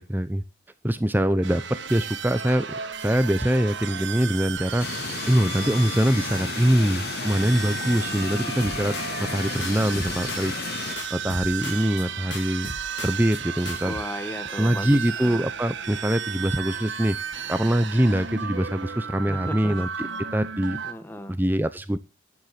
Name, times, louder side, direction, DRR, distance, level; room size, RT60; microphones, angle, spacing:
voice 1, 0.1-0.4 0.8-2.7 3.0-4.9 5.3-8.9 9.2-10.5 10.8-12.7 13.0-13.9 14.6-17.2 17.5-20.1 20.3-20.8 21.3-22.0, equal, 10° right, 0.8 m, -23 dB
sound 1, 1.4-20.9, right 7 dB, 70° right, 1.8 m, -34 dB
sound 2, 4.8-11.0, left 6 dB, 50° left, 0.7 m, -33 dB
sound 3, 8.6-9.4 9.6-10.7 11.0-12.0 12.3-13.4 13.6-14.0, left 3 dB, 70° left, 3.0 m, -38 dB
voice 2, 13.8-15.5 19.3-19.8 20.0-20.4 20.8-21.4, left 1 dB, 10° left, 1.5 m, -36 dB
12.0 x 9.7 x 5.9 m
head